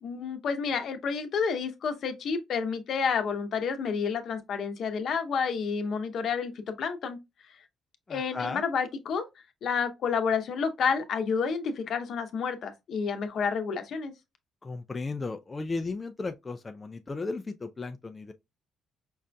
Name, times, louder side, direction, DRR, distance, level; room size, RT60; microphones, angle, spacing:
voice 1, 0.0-7.2 8.1-9.3 9.6-14.1, left 6 dB, 65° left, 0.7 m, -30 dB
voice 2, 8.1-8.6 14.6-18.3, left 3 dB, 25° left, 0.3 m, -35 dB
5.4 x 2.5 x 2.2 m
cardioid pair, 90°, 0 cm